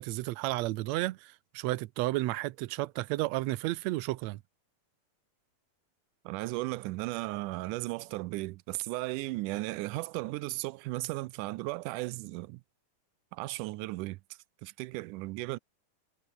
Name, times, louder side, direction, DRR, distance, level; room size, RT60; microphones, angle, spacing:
voice 1, 0.0-4.4, right 18 dB, 75° right, 1.7 m, -32 dB
voice 2, 6.3-12.6 13.3-14.2 14.6-15.6, right 20 dB, 90° right, 2.1 m, -35 dB
omnidirectional pair, 3.6 m